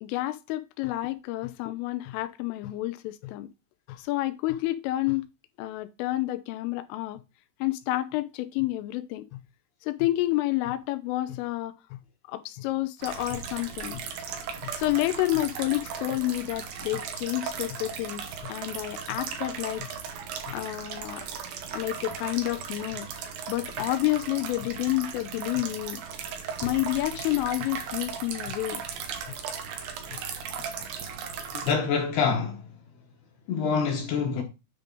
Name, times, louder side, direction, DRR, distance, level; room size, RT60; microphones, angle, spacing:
voice 1, 0.0-3.5 3.9-5.2 5.6-7.2 7.6-9.4 9.8-12.0 12.3-14.0 14.6-19.9 20.5-21.3 21.7-23.1 23.5-26.0 26.6-28.8 29.3-29.4 30.1-30.2, left 17 dB, 85° left, 3.0 m, -29 dB
sound 1, 13.0-31.7, right 6 dB, 75° right, 2.1 m, -37 dB
voice 2, 31.7-32.6 33.5-34.4, left 5 dB, 65° left, 2.8 m, -26 dB
9.6 x 3.7 x 5.1 m
omnidirectional pair, 5.8 m